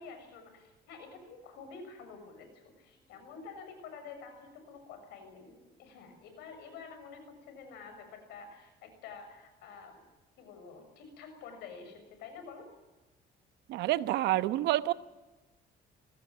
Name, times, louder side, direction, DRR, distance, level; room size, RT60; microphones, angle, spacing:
voice 1, 0.0-10.1 10.4-12.7, left 5 dB, 90° left, 7 dB, 6.7 m, -49 dB
voice 2, 13.7-14.9, right 15 dB, 85° right, 13 dB, 1.0 m, -28 dB
26.0 x 18.0 x 7.5 m, 1.1 s
cardioid pair, 110°, 17 cm